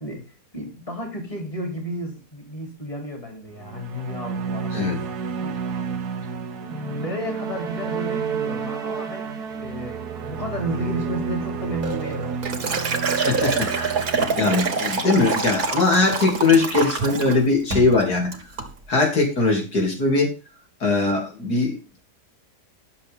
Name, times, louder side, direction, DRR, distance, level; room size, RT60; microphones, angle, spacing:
voice 1, 0.0-4.7 5.4-5.6 6.7-9.3 9.6-12.7, equal, 20° left, 2 dB, 3.3 m, -32 dB
sound 1, 3.5-16.0, right 6 dB, 90° right, 1.6 m, -31 dB
Liquid, 11.8-17.4 17.7-18.0 18.3-18.7, right 4 dB, 70° right, 2.3 m, -26 dB
voice 2, 13.3-13.9 14.4-18.3 18.9-20.3 20.8-22.0, left 3 dB, 85° left, 0 dB, 3.6 m, -20 dB
12.0 x 7.3 x 3.6 m, 0.31 s
omnidirectional pair, 1.6 m